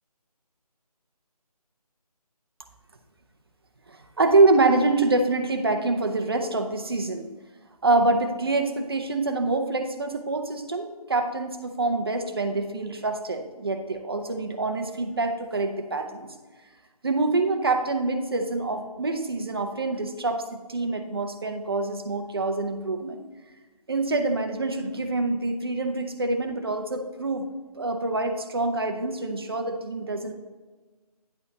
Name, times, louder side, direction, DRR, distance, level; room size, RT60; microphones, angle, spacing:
voice 1, 3.9-7.3 7.8-16.3 17.0-23.2 23.9-27.5 27.8-30.3, right 3 dB, 40° right, 6 dB, 0.9 m, -25 dB
10.0 x 5.6 x 4.1 m, 1.3 s
figure-of-eight pair, 155°, 20 cm